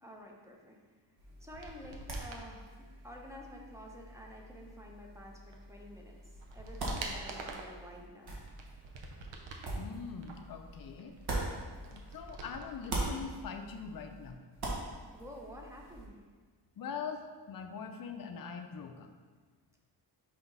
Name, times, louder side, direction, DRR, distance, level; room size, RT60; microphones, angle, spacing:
voice 1, 0.0-0.8 1.4-6.2 6.5-8.3 15.1-16.2, equal, 5° right, -1 dB, 0.7 m, -50 dB
sound 1, 1.2-12.4 12.6-16.1, right 2 dB, 60° right, 1.3 m, -42 dB
sound 2, 1.4-2.5 5.5-5.6 6.1-7.8 8.3-9.8 10.2-12.9 13.2-13.3, right 3 dB, 90° right, 0.8 m, -46 dB
voice 2, 9.7-11.1 11.9-14.4 16.8-19.1, left 6 dB, 50° left, 5 dB, 0.5 m, -42 dB
6.0 x 2.9 x 5.4 m, 1.4 s
wide cardioid pair, 160°, 44 cm